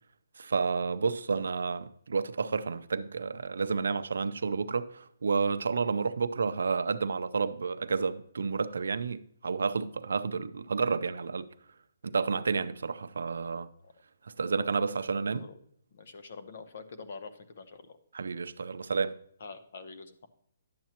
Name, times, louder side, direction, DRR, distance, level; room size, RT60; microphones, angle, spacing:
voice 1, 0.4-11.5 12.0-13.7 14.2-15.4 18.1-19.1, right 5 dB, 85° right, 0.5 m, -30 dB
voice 2, 15.9-18.0 19.4-20.3, left 4 dB, 50° left, 0.8 m, -45 dB
10.5 x 7.3 x 2.9 m
hypercardioid pair, 170°, 0 cm